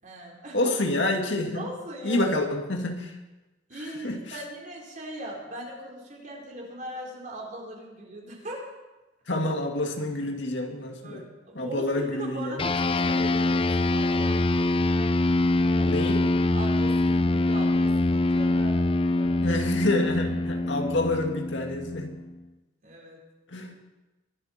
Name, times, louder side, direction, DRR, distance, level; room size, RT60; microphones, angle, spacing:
voice 1, 0.0-0.7 1.5-2.3 3.7-8.6 11.0-14.4 15.7-16.0 16.5-19.6 22.8-23.2, right 1 dB, 45° right, -2 dB, 4.2 m, -40 dB
voice 2, 0.5-1.7 2.0-3.1 4.0-4.2 9.3-11.2 11.5-12.6 15.8-16.3 19.4-22.1 23.5-23.7, left 2 dB, 70° left, 3 dB, 2.1 m, -28 dB
sound 1, 12.6-22.3, left 2 dB, 30° left, 0.6 m, -24 dB
23.0 x 12.0 x 4.4 m, 1.1 s
head